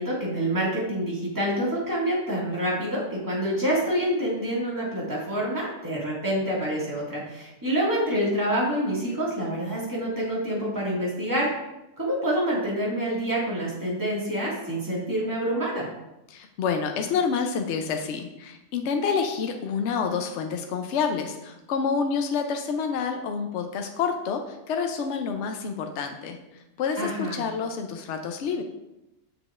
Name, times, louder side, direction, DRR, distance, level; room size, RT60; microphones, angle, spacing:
voice 1, 0.0-11.5 12.0-15.9 27.0-27.4, equal, 15° right, -6 dB, 1.9 m, -27 dB
voice 2, 16.3-26.4 26.8-28.6, left 6 dB, 70° left, 5 dB, 0.9 m, -28 dB
6.8 x 5.9 x 2.4 m, 0.92 s
omnidirectional pair, 1.3 m